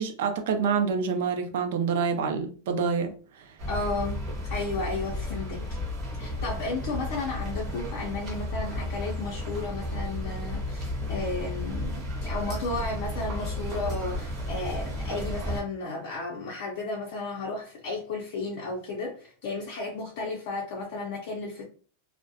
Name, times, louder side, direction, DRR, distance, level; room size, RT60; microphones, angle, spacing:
voice 1, 0.0-3.1, right 5 dB, 60° right, 0.4 m, -27 dB
sound 1, 3.6-15.6, left 1 dB, 25° right, 0.7 m, -33 dB
voice 2, 3.7-4.2 4.5-5.8 6.2-21.6, left 3 dB, 45° left, 0.5 m, -33 dB
2.3 x 2.0 x 2.7 m
supercardioid pair, 175°, 0 cm